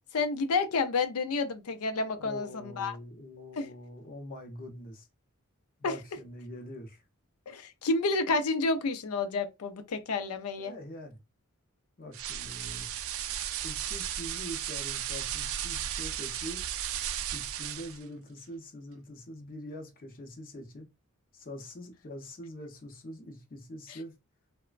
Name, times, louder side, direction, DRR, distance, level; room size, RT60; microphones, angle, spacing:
voice 1, 0.1-3.0 3.6-3.7 5.8-6.0 7.5-10.7, left 3 dB, 80° left, 0.5 m, -30 dB
voice 2, 2.1-5.1 5.8-7.0 10.6-11.2 12.0-12.9 13.6-16.6 17.3-20.9 21.3-24.1, left 1 dB, 40° left, 0.7 m, -44 dB
sound 1, 12.1-18.0, right 10 dB, 65° right, 0.3 m, -35 dB
3.1 x 2.1 x 2.4 m
head